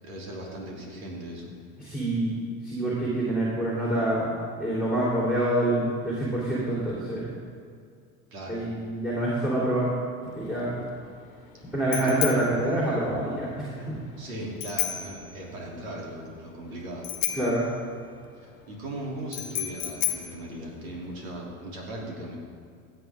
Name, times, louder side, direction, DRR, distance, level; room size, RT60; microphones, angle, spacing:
voice 1, 0.0-1.5 8.3-8.6 11.6-12.4 14.2-17.1 18.3-22.4, right 1 dB, 80° right, -3 dB, 3.2 m, -38 dB
voice 2, 1.8-4.3 4.6-7.3 8.5-9.9 10.3-10.8 11.7-14.0 17.3-17.7, right 1 dB, ahead, -7 dB, 3.0 m, -26 dB
Bicycle bell, 10.2-21.4, left 13 dB, 75° left, 1.2 m, -35 dB
16.5 x 7.8 x 3.6 m, 2.2 s
hypercardioid pair, 90°, 41 cm